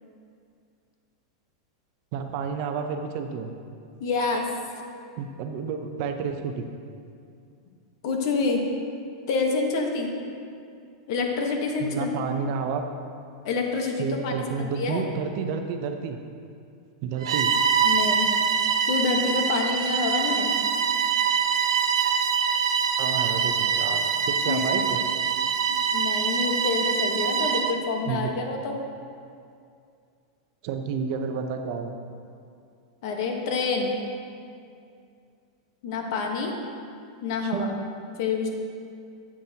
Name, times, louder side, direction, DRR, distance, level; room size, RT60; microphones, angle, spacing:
voice 1, 2.1-3.5 5.2-6.7 11.8-12.9 14.0-16.2 17.0-17.5 23.0-25.0 28.1-28.3 30.6-31.9 37.4-37.7, right 6 dB, 50° right, 6 dB, 0.7 m, -30 dB
voice 2, 4.0-4.4 8.0-8.6 9.3-10.1 11.1-12.1 13.4-15.0 17.8-18.3 18.8-20.5 24.5-24.6 25.7-28.7 33.0-33.9 35.8-36.5 37.2-37.7 38.2-38.5, left 4 dB, 60° left, 2 dB, 1.2 m, -27 dB
Bowed string instrument, 17.2-27.8, right 6 dB, 90° right, 0.6 m, -24 dB
11.5 x 7.4 x 2.9 m, 2.4 s
supercardioid pair, 150°, 3 cm